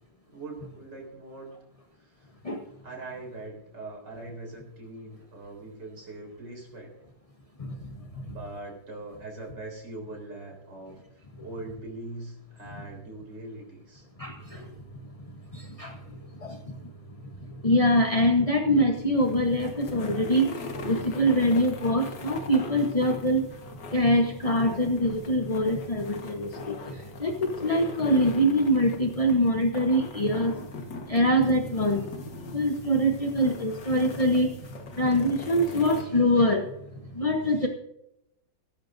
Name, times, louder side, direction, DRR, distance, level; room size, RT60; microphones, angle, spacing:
voice 1, 0.3-1.6 2.0-2.3 2.8-6.9 8.2-11.0 11.4-14.1, right 2 dB, 60° right, 0 dB, 4.6 m, -41 dB
voice 2, 7.6-8.3 14.2-14.7 15.5-16.9 17.4-23.5 23.9-30.6 31.1-34.7 34.9-36.7 37.1-37.7, equal, 25° left, 3 dB, 0.8 m, -24 dB
sound 1, 19.0-36.0, left 2 dB, 65° left, 2.0 m, -42 dB
16.5 x 14.0 x 2.6 m, 0.82 s
omnidirectional pair, 2.1 m